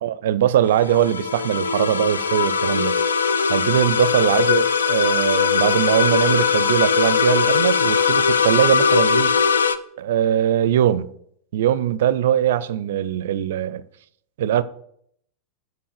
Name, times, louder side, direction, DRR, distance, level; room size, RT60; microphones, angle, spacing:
voice 1, 0.0-3.0 3.5-9.4 10.0-11.1 11.5-13.8 14.4-14.6, right 11 dB, 55° right, 0.4 m, -21 dB
sound 1, 0.7-9.8, left 6 dB, 70° left, 0.4 m, -20 dB
7.7 x 4.7 x 6.6 m
figure-of-eight pair, 90°, 0 cm